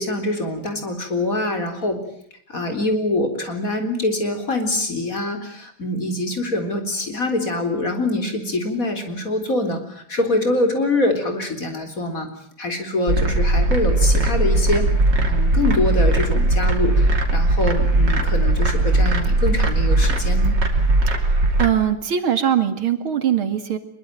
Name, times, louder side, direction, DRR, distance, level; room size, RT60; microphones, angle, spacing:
voice 1, 0.0-2.0 2.5-12.3 12.6-14.9 15.3-20.5, left 2 dB, 40° left, 5 dB, 4.2 m, -24 dB
sound 1, 13.1-21.7, right 2 dB, 55° right, 3.6 m, -18 dB
voice 2, 21.1-23.8, right 9 dB, 80° right, 9 dB, 3.0 m, -22 dB
24.0 x 22.5 x 9.1 m, 0.64 s
omnidirectional pair, 2.3 m